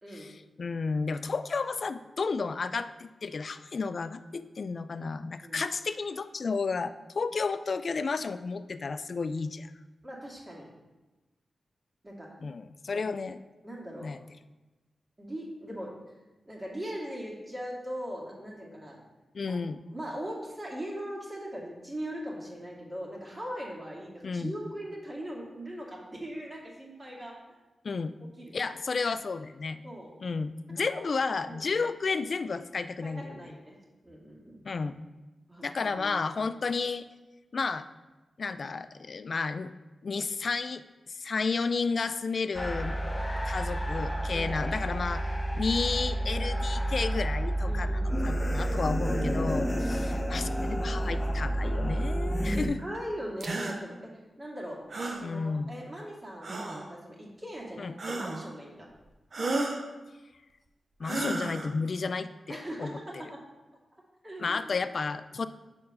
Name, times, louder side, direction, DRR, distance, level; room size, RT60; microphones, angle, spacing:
voice 1, 0.1-9.7 12.4-13.4 14.0-14.2 19.3-19.8 24.2-24.5 27.8-28.1 28.5-29.8 30.2-33.3 34.6-35.0 35.6-37.1 37.5-37.9 38.4-39.7 40.0-43.0 43.4-45.3 45.5-52.8 55.2-55.7 57.8-57.9 61.0-62.9 64.4-65.5, left 4 dB, 65° left, 12 dB, 0.3 m, -32 dB
voice 2, 10.0-10.7 12.0-12.3 13.6-14.1 15.2-15.9 16.5-19.0 19.5-19.6 19.9-27.4 28.4-28.5 29.8-30.1 30.9-31.1 31.4-31.7 33.0-33.8 34.0-34.6 35.5-36.2 44.3-44.5 47.7-48.9 52.5-54.8 55.2-58.9 62.5-63.4 64.2-64.7, equal, 30° right, -2 dB, 2.0 m, -40 dB
sound 1, 42.5-52.7, right 1 dB, 20° left, 0.8 m, -30 dB
sound 2, 53.4-53.8 54.9-55.3 56.4-56.9 58.0-58.5 59.3-59.8 61.0-61.7, right 2 dB, 60° right, 0.7 m, -33 dB
5.3 x 4.4 x 5.4 m, 1.1 s
cardioid pair, 40°, 0 cm